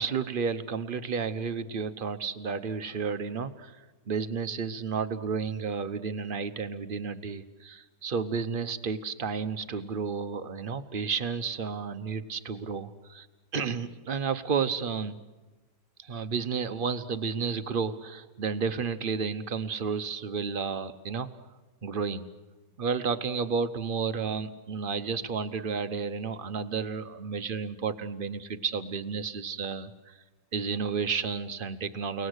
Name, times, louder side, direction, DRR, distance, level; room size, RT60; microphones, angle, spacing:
voice 1, 0.0-13.3 13.5-15.2 16.0-21.3 21.8-22.3 22.8-30.1 30.5-32.3, right 5 dB, 45° right, 10 dB, 0.7 m, -32 dB
30.0 x 18.5 x 8.1 m, 1.2 s
omnidirectional pair, 2.0 m